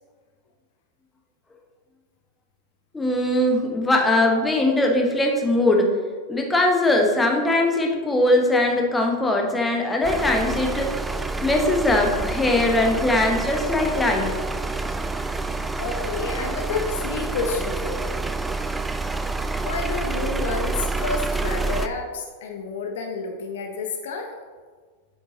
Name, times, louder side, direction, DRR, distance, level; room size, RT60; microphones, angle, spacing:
voice 1, 2.9-6.0 6.3-11.0 11.4-14.3, left 1 dB, 10° left, 1 dB, 1.2 m, -21 dB
sound 1, 10.0-21.9, right 3 dB, 10° right, 0.4 m, -28 dB
voice 2, 15.8-18.2 19.2-19.3 19.6-24.3, left 4 dB, 60° left, 4 dB, 0.8 m, -30 dB
8.1 x 7.6 x 2.9 m, 1.5 s
figure-of-eight pair, 90°, 0 cm